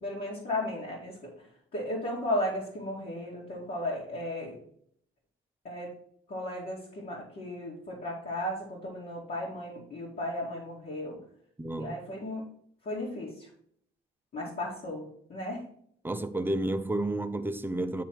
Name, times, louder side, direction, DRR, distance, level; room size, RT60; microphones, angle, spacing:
voice 1, 0.0-1.3 1.7-4.6 5.6-5.9 6.3-11.2 11.8-12.5 12.8-13.5 14.3-15.6, left 1 dB, 50° left, 2.3 m, -35 dB
voice 2, 11.6-12.0 16.0-18.0, right 1 dB, 10° right, 0.6 m, -31 dB
9.9 x 3.4 x 4.6 m
cardioid pair, 90°, 20 cm